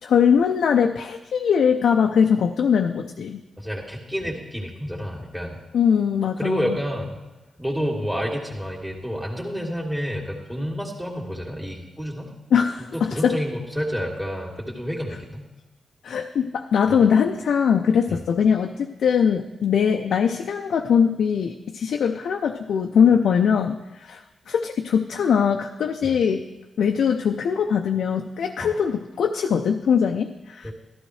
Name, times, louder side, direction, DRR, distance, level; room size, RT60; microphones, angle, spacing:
voice 1, 0.0-3.4 5.7-6.8 12.5-13.3 16.0-26.5 26.8-30.7, left 7 dB, 75° left, 4 dB, 0.5 m, -21 dB
voice 2, 3.6-5.6 6.4-7.2 7.6-12.3 12.9-15.5 16.9-17.0 18.1-18.2 26.0-26.1 28.6-28.7 30.6-30.7, equal, 10° right, -2 dB, 2.4 m, -29 dB
13.0 x 12.0 x 3.2 m, 1.1 s
supercardioid pair, 40°, 0 cm